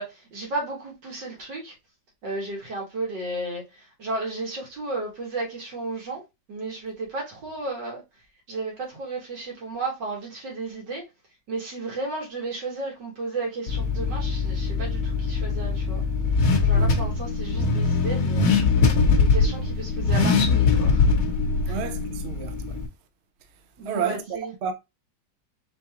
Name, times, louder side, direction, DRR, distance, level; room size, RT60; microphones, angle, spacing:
voice 1, 0.0-1.7 2.2-3.6 4.0-6.2 6.5-8.0 8.5-11.0 11.5-16.0 16.6-18.5 19.2-21.1 21.7-21.8 23.8-24.5, right 2 dB, 75° right, 2.5 m, -33 dB
Car / Accelerating revving vroom, 13.7-22.9, left 4 dB, 55° left, 1.2 m, -22 dB
voice 2, 16.7-17.1 21.7-22.5 23.9-24.7, right 6 dB, 55° right, 0.7 m, -31 dB
4.5 x 3.6 x 2.9 m
omnidirectional pair, 1.9 m